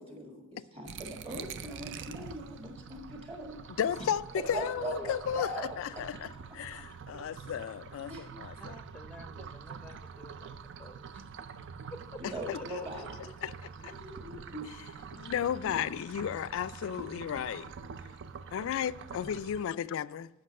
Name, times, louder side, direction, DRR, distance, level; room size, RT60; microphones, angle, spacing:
voice 1, 0.0-3.6 4.4-5.7 8.1-8.2 12.2-13.0 13.8-14.7 15.6-15.8, right 1 dB, 30° right, 1.6 m, -40 dB
sound 1, 0.9-19.6, right 6 dB, 60° right, 0.4 m, -46 dB
voice 2, 3.8-8.8 12.5-12.8 13.2-13.5 13.8-14.0 14.7-14.8 15.1-17.7 18.5-20.3, left 9 dB, 65° left, 0.3 m, -34 dB
voice 3, 8.6-12.2 12.5-12.9 13.2-13.3, left 1 dB, 5° left, 0.6 m, -51 dB
7.7 x 5.9 x 6.3 m
head